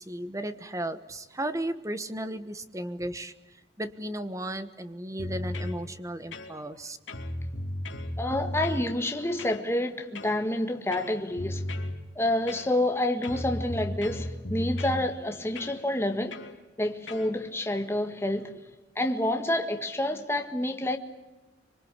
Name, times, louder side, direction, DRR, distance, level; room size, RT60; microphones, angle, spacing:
voice 1, 0.0-3.3 3.8-7.0, right 1 dB, 15° right, 1.3 m, -35 dB
sound 1, 5.2-5.8 6.3-6.8 7.1-8.9 9.4-9.6 10.2-10.4 10.9-12.0 12.5-12.9 13.2-15.0 15.6-15.8 16.3-16.5 17.1-17.3, left 1 dB, 85° left, 2.7 m, -35 dB
voice 2, 8.2-11.6 12.1-16.4 16.8-18.6 18.9-21.0, left 1 dB, 15° left, 1.7 m, -28 dB
26.0 x 23.5 x 8.3 m
head